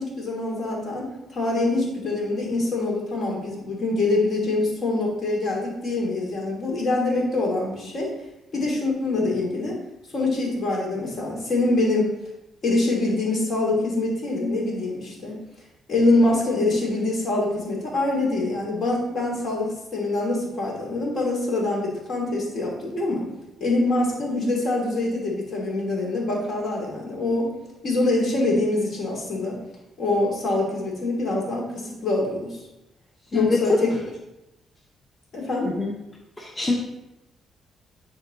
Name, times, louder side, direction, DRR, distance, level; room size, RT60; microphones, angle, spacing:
voice 1, 0.0-8.1 8.5-9.8 10.1-12.1 12.6-15.3 15.9-23.3 23.6-27.5 27.8-29.6 30.0-32.6 33.3-34.0 35.3-35.7, left 2 dB, 55° left, -2 dB, 2.7 m, -24 dB
voice 2, 33.3-33.8 35.6-35.9 36.4-36.7, left 3 dB, 15° left, 0 dB, 0.9 m, -23 dB
10.0 x 3.9 x 4.0 m, 0.95 s
cardioid pair, 90°, 0 cm